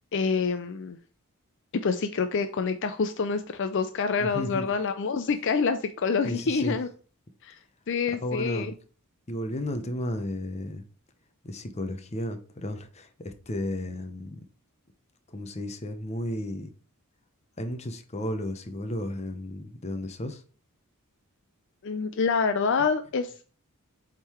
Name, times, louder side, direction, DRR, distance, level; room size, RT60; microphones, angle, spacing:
voice 1, 0.1-1.0 1.7-6.9 7.4-7.6 7.9-8.7 21.8-23.5, left 5 dB, 55° left, 0.5 m, -27 dB
voice 2, 4.2-4.7 6.2-6.8 8.2-8.8 9.3-10.8 11.4-14.4 15.3-16.7 17.6-20.4, left 1 dB, 30° left, 0.8 m, -33 dB
7.8 x 3.8 x 4.4 m
head